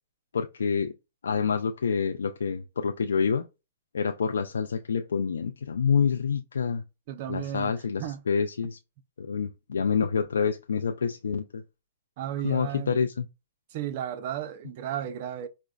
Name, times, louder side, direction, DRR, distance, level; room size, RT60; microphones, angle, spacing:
voice 1, 0.3-0.9 1.2-3.5 3.9-6.8 7.3-8.8 9.2-11.6 12.4-13.3, left 6 dB, 90° left, 0.3 m, -27 dB
voice 2, 7.1-7.7 8.0-8.2 12.2-13.0 13.7-15.5, right 10 dB, 50° right, 0.5 m, -34 dB
4.9 x 2.1 x 2.3 m
hypercardioid pair, 140°, 0 cm